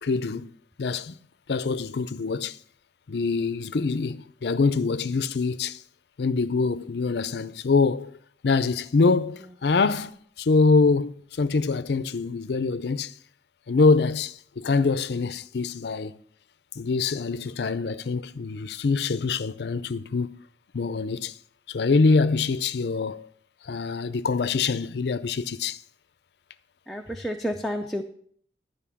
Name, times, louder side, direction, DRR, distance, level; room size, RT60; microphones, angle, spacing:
voice 1, 0.0-0.5 0.8-1.2 1.5-2.6 3.1-5.8 6.2-8.2 8.4-13.1 13.7-16.2 16.8-20.4 20.7-21.4 21.7-23.3 23.6-25.8, left 4 dB, 65° left, 0.5 m, -24 dB
voice 2, 26.9-28.0, equal, ahead, 0.5 m, -30 dB
11.5 x 5.2 x 7.0 m
head